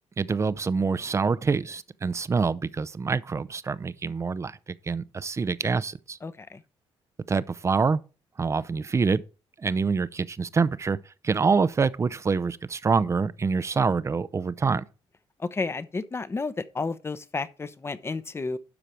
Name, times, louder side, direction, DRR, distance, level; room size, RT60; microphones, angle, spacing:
voice 1, 0.2-4.6 4.9-6.2 7.3-8.0 8.4-9.2 9.6-11.0 11.2-14.8, right 5 dB, 25° right, 0.5 m, -26 dB
voice 2, 6.2-6.6 15.4-18.6, left 3 dB, 25° left, 0.7 m, -32 dB
12.0 x 4.9 x 4.4 m
cardioid pair, 95°, 11 cm